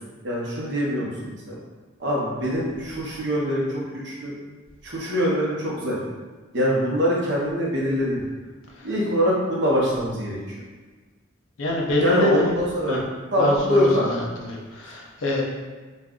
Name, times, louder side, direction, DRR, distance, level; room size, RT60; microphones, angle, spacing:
voice 1, 0.2-1.6 2.0-4.3 4.8-6.0 6.5-8.3 8.8-10.5 12.0-13.0 13.3-14.2, equal, 60° right, -5 dB, 0.8 m, -23 dB
voice 2, 11.6-12.5 12.9-13.0 13.4-15.4, left 2 dB, 75° left, -2 dB, 0.6 m, -25 dB
2.6 x 2.3 x 3.6 m, 1.4 s
head